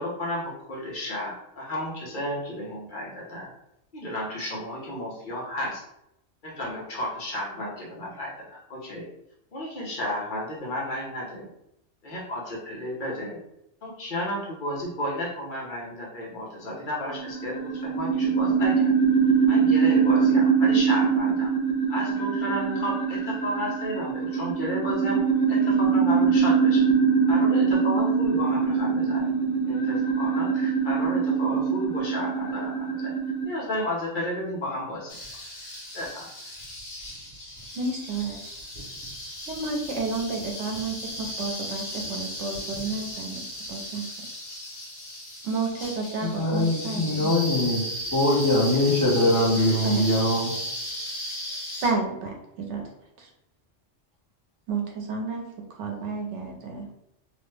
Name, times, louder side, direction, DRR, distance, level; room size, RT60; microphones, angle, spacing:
voice 1, 0.0-3.5 3.9-5.8 6.4-9.1 9.5-11.5 12.0-13.4 13.8-18.9 19.5-21.5 21.9-25.2 25.5-26.8 27.3-29.3 29.7-33.1 33.5-35.1 35.9-36.3, left 1 dB, 50° left, -5 dB, 0.9 m, -33 dB
sound 1, 17.1-33.4, right 6 dB, 90° left, 1.0 m, -23 dB
sound 2, 35.1-51.9, equal, 70° left, 1.2 m, -36 dB
voice 2, 37.8-38.6 39.5-44.1 45.4-47.3 49.8-50.0 51.8-52.8 53.2-53.3 54.7-55.4 55.8-56.9, right 3 dB, 85° right, 1 dB, 1.0 m, -31 dB
voice 3, 46.2-50.6, left 1 dB, 20° left, -8 dB, 0.8 m, -23 dB
2.9 x 2.1 x 3.2 m, 0.81 s
omnidirectional pair, 1.2 m